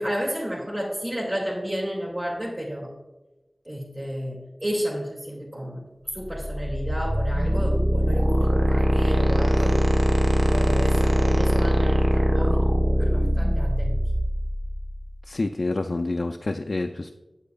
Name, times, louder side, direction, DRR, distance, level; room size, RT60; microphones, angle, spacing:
voice 1, 0.0-2.9 3.6-5.8 6.1-9.8 10.4-14.1, equal, 35° right, -7 dB, 2.1 m, -31 dB
sound 1, 6.2-15.1, equal, 85° right, 0.7 m, -22 dB
voice 2, 15.3-17.1, left 2 dB, 75° left, 5 dB, 0.3 m, -27 dB
8.8 x 8.3 x 2.2 m, 1.1 s
wide cardioid pair, 50°, 0 cm